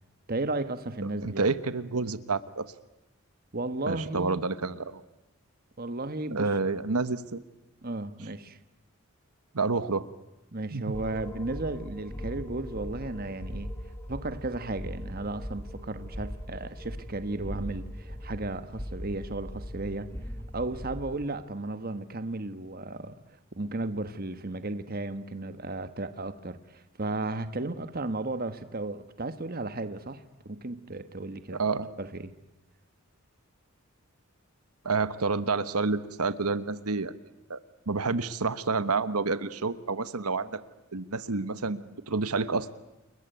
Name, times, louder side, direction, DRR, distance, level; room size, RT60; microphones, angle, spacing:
voice 1, 0.3-1.5 3.5-4.4 5.8-6.6 7.8-8.6 10.5-13.7 14.1-20.1 20.5-23.2 23.5-31.6 32.0-32.3, right 2 dB, 40° right, 1.4 m, -34 dB
voice 2, 1.2-2.6 3.9-5.0 6.3-7.4 9.5-10.0 10.7-10.8 31.5-31.9 34.8-37.1 37.5-37.6 37.9-40.6 40.9-42.7, right 4 dB, 80° right, 1.2 m, -29 dB
sound 1, 10.9-21.3, equal, 10° left, 1.4 m, -40 dB
29.5 x 21.5 x 9.3 m
head